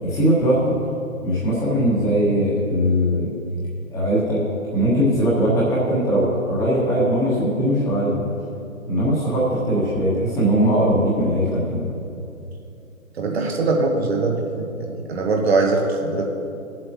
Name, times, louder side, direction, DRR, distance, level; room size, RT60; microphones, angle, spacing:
voice 1, 0.0-0.7 1.2-3.3 3.9-4.4 4.7-8.2 8.8-11.9, equal, 5° left, -7 dB, 1.4 m, -20 dB
voice 2, 13.2-16.2, right 3 dB, 45° right, 1 dB, 1.3 m, -22 dB
18.0 x 7.6 x 2.9 m, 2.7 s
figure-of-eight pair, 140°, 42 cm